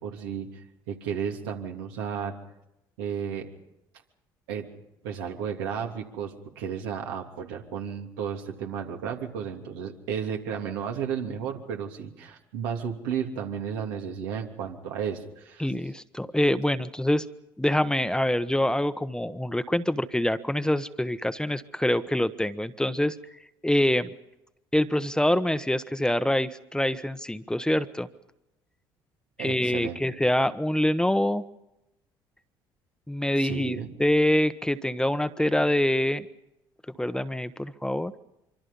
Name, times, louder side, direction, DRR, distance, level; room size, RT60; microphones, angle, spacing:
voice 1, 0.0-0.6 0.9-2.3 3.0-3.5 4.5-4.6 5.0-15.7 29.4-30.0 33.4-34.0, right 7 dB, 80° right, 2 dB, 3.0 m, -33 dB
voice 2, 15.6-17.2 17.6-23.2 23.6-24.1 24.7-28.1 29.4-31.4 33.1-36.2 37.0-38.1, left 1 dB, 5° left, 12 dB, 1.2 m, -25 dB
25.5 x 25.0 x 5.5 m, 0.88 s
hypercardioid pair, 55°, 12 cm